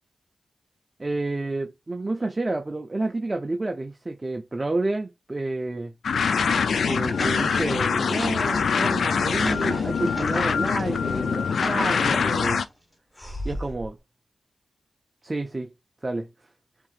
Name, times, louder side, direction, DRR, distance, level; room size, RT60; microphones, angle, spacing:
voice 1, 1.0-5.9 6.8-12.6 13.4-14.0 15.2-15.7 16.0-16.3, right 2 dB, 35° right, 0.7 m, -29 dB
sound 1, 6.0-12.6, left 6 dB, 80° left, 0.5 m, -24 dB
sound 2, 7.0-10.8 11.3-12.5 13.2-13.9, equal, 15° left, 1.8 m, -36 dB
7.1 x 2.9 x 2.5 m
cardioid pair, 50°, 0 cm